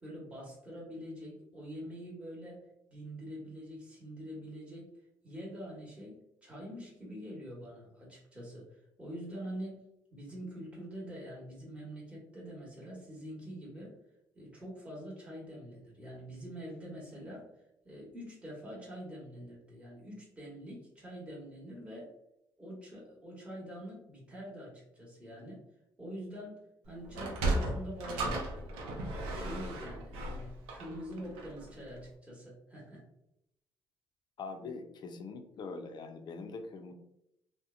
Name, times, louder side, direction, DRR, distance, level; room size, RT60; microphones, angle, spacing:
voice 1, 0.0-2.6 2.9-4.9 5.2-8.7 9.0-9.8 10.1-13.9 14.3-17.5 17.8-22.1 22.6-25.6 26.0-26.6 26.9-33.0, equal, 15° right, -4 dB, 1.1 m, -45 dB
Sliding door, 27.0-31.7, right 2 dB, 85° right, 0.5 m, -35 dB
voice 2, 34.4-36.9, left 4 dB, 55° left, 5 dB, 0.4 m, -43 dB
2.8 x 2.1 x 2.4 m, 0.82 s
supercardioid pair, 70°, 9 cm